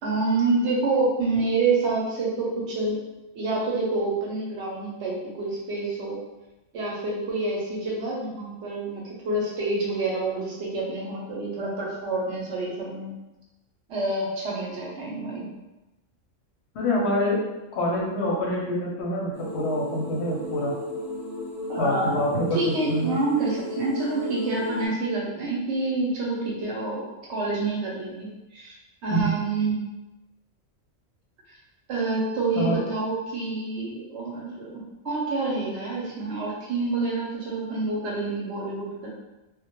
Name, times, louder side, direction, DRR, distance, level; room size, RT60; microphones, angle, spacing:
voice 1, 0.0-3.0 3.3-6.2 6.7-13.1 13.9-15.5 21.7-22.2 22.5-28.8 29.0-29.8 31.9-39.1, right 3 dB, 65° right, -4 dB, 0.8 m, -27 dB
voice 2, 16.7-17.4 17.7-20.7 21.8-23.2 29.1-29.4 32.5-32.8, equal, 65° left, -4 dB, 0.7 m, -26 dB
sound 1, 19.3-24.9, left 1 dB, 25° left, 0.4 m, -34 dB
2.1 x 2.1 x 2.8 m, 1.0 s
omnidirectional pair, 1.3 m